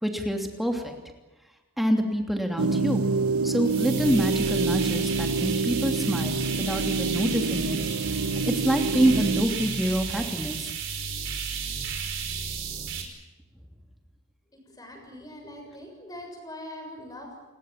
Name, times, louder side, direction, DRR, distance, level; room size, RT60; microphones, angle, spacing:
voice 1, 0.0-1.0 1.8-3.0 3.4-7.8 8.5-10.7, equal, ahead, 3 dB, 2.9 m, -26 dB
sound 1, 2.6-9.4, right 3 dB, 85° right, 1.3 m, -27 dB
sound 2, 3.6-13.0, right 6 dB, 55° right, 5.2 m, -33 dB
voice 2, 14.8-17.3, left 1 dB, 15° left, 3 dB, 6.8 m, -42 dB
30.0 x 21.0 x 7.5 m, 1.1 s
head